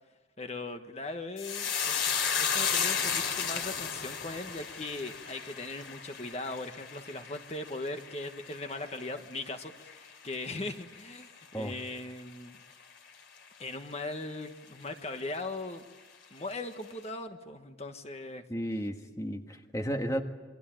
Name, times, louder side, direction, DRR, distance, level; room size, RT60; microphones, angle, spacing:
voice 1, 0.4-2.0 2.4-12.6 13.6-15.8 16.3-18.4, left 2 dB, 35° left, 6 dB, 1.4 m, -39 dB
sound 1, 1.4-10.0 10.3-10.9 11.2-11.5, left 6 dB, 85° left, 3.1 m, -33 dB
voice 2, 18.5-20.2, equal, 15° left, 5 dB, 1.4 m, -33 dB
28.0 x 23.5 x 9.0 m, 1.2 s
head